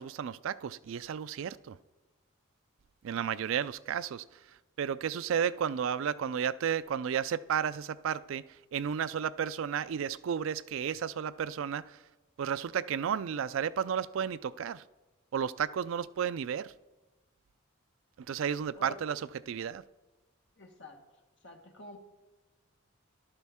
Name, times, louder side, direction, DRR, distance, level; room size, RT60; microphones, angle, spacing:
voice 1, 0.0-1.8 3.0-4.2 4.8-8.4 8.7-12.0 12.4-14.8 15.3-16.7 18.3-19.8, right 8 dB, 70° right, 0.3 m, -32 dB
voice 2, 20.6-21.0 21.4-22.0, equal, 60° left, 1.5 m, -47 dB
13.5 x 12.0 x 3.6 m
head